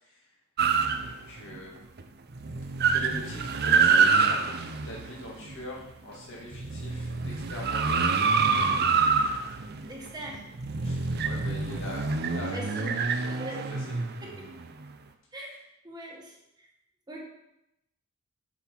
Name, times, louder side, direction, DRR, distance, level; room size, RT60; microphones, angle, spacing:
sound 1, 0.6-1.6 2.0-2.1 2.3-5.9 6.4-14.9, right 5 dB, 50° right, 0.6 m, -26 dB
voice 1, 0.9-1.7 2.9-8.1 10.8-13.4 13.7-14.0, left 1 dB, 65° left, -3 dB, 2.2 m, -42 dB
voice 2, 9.8-10.5 12.5-13.0 13.4-13.7 14.2-14.5 15.3-15.5 15.8-16.7 17.1-17.2, right 1 dB, 20° right, -2 dB, 1.5 m, -41 dB
7.0 x 6.0 x 4.6 m, 0.85 s
head